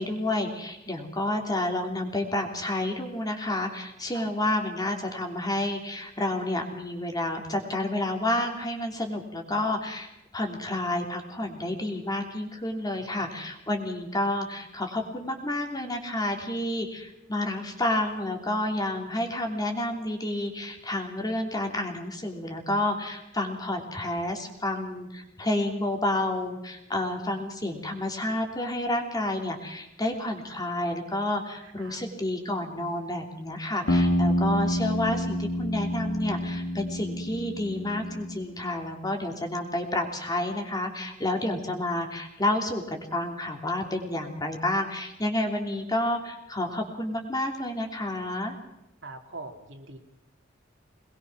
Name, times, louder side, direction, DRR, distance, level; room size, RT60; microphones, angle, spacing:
voice 1, 0.0-10.1 10.3-48.6, left 1 dB, 20° left, 3 dB, 3.2 m, -30 dB
voice 2, 4.1-4.5 12.9-13.5 31.6-32.1 49.0-50.0, right 2 dB, 70° right, 3 dB, 3.0 m, -45 dB
sound 1, 33.9-38.5, equal, 80° left, 2.5 m, -28 dB
24.0 x 21.0 x 6.2 m, 0.89 s
head